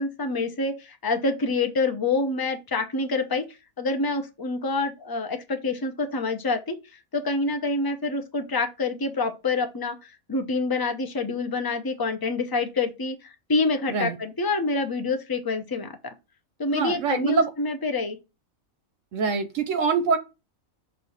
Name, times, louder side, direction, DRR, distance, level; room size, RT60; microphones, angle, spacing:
voice 1, 0.0-16.1 16.6-18.2, left 3 dB, 20° left, 0.7 m, -27 dB
voice 2, 16.7-17.5 19.1-20.2, right 5 dB, 70° right, 1.0 m, -24 dB
6.5 x 2.7 x 5.5 m
omnidirectional pair, 1.5 m